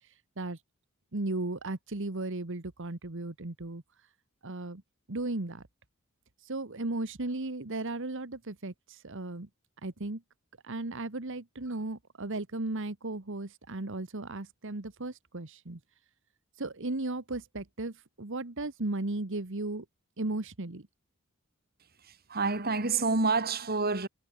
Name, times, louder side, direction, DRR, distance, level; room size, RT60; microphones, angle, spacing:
voice 1, 1.1-3.8 4.4-4.8 5.1-5.6 6.4-9.5 9.8-10.2 10.6-15.8 16.6-19.8 20.2-20.9, right 2 dB, 65° right, 1.5 m, -35 dB
voice 2, 22.3-24.1, right 4 dB, 45° right, 3.4 m, -27 dB
head